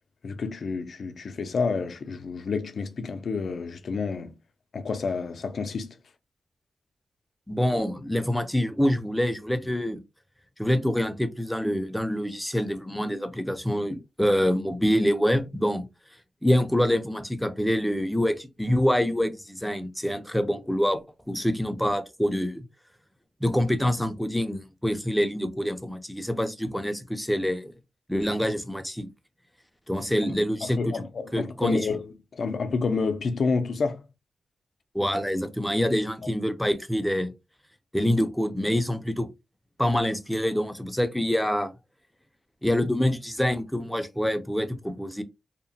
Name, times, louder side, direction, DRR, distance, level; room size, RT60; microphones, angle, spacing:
voice 1, 0.2-4.3 4.7-6.0 30.6-34.0, left 4 dB, 65° left, 0.4 m, -29 dB
voice 2, 7.5-10.0 10.6-15.8 16.4-21.0 21.3-22.6 23.4-27.7 28.1-29.1 29.9-31.0 31.3-31.9 34.9-37.3 37.9-39.3 39.8-41.7 42.6-45.2, equal, 5° left, 0.5 m, -26 dB
2.8 x 2.1 x 2.7 m
wide cardioid pair, 105°, 0 cm